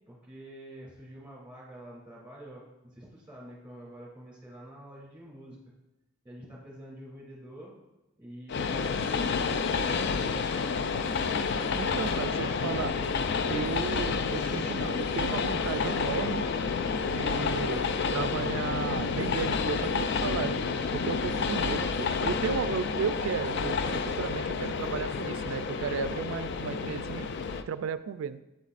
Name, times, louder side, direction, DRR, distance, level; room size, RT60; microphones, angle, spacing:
voice 1, 0.1-5.6 6.2-7.7 8.2-10.2, right 1 dB, 5° right, -4 dB, 2.7 m, -47 dB
Train, 8.5-27.6, left 5 dB, 60° left, 0.4 m, -30 dB
voice 2, 11.7-13.0 13.5-16.5 17.1-20.6 20.9-27.3 27.7-28.4, right 6 dB, 85° right, 14 dB, 0.3 m, -34 dB
8.4 x 8.0 x 2.5 m, 1.0 s
head